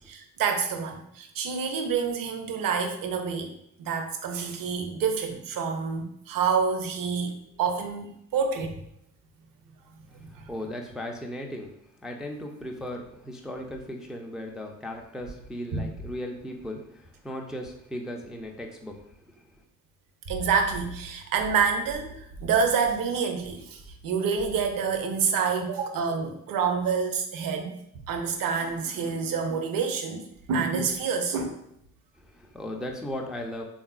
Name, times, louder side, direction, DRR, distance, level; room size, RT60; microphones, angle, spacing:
voice 1, 0.1-3.5 3.8-7.3 7.6-8.8 9.9-10.5 15.7-15.9 20.3-31.5, right 6 dB, 50° right, 6 dB, 0.6 m, -28 dB
voice 2, 10.3-19.0 19.3-19.4 32.2-33.6, left 1 dB, ahead, 1 dB, 0.4 m, -37 dB
3.4 x 2.5 x 2.3 m, 0.75 s
hypercardioid pair, 45°, 43 cm